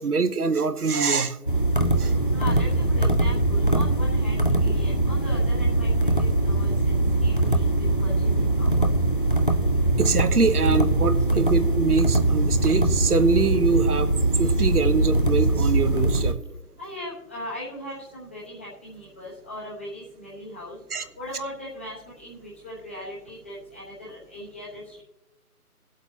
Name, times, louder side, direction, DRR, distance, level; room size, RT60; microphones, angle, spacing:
voice 1, 0.0-1.4 2.0-2.2 10.0-14.1 14.4-16.3 20.9-21.0, right 4 dB, 70° right, 11 dB, 1.1 m, -24 dB
sound 1, 1.5-16.3, right 2 dB, 35° left, 0.5 m, -22 dB
voice 2, 2.3-8.9 16.8-25.0, left 1 dB, 10° left, -8 dB, 1.0 m, -39 dB
19.5 x 8.1 x 2.8 m, 0.94 s
figure-of-eight pair, 160°, 46 cm